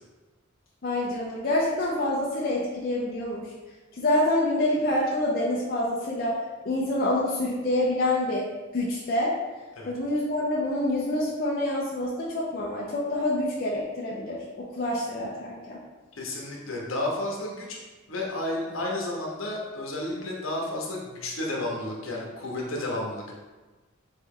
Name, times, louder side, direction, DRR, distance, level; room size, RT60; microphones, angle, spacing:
voice 1, 0.8-3.5 4.0-6.4 6.6-8.5 8.7-9.3 9.8-15.8, left 1 dB, 45° left, -5 dB, 0.6 m, -27 dB
voice 2, 16.2-17.8 18.1-23.3, left 1 dB, 75° left, -2 dB, 1.0 m, -32 dB
4.0 x 3.3 x 3.7 m, 1.2 s
head